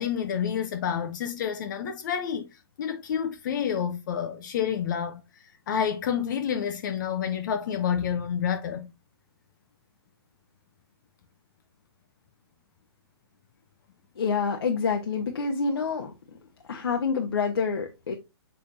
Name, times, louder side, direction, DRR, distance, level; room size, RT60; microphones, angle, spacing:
voice 1, 0.0-2.5 2.8-5.2 5.7-8.9, left 8 dB, 45° left, 0.9 m, -29 dB
voice 2, 14.2-16.1 16.7-18.1, left 5 dB, 65° left, 1.2 m, -27 dB
6.9 x 5.0 x 2.7 m
figure-of-eight pair, 125°, 14 cm